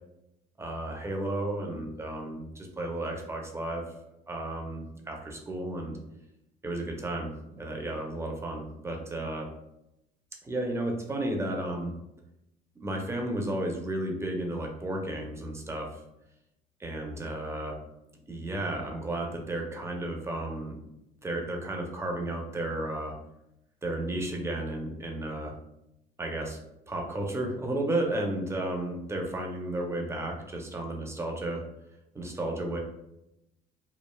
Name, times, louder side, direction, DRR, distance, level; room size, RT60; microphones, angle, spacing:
voice 1, 0.6-3.8 4.3-5.9 6.6-9.5 10.4-11.9 12.8-15.9 16.8-17.7 18.3-20.8 21.2-23.1 23.8-25.6 26.2-26.6 26.9-31.6 32.1-32.8, right 1 dB, 15° right, 1 dB, 0.5 m, -33 dB
3.1 x 2.3 x 2.2 m, 0.86 s
cardioid pair, 110°, 17 cm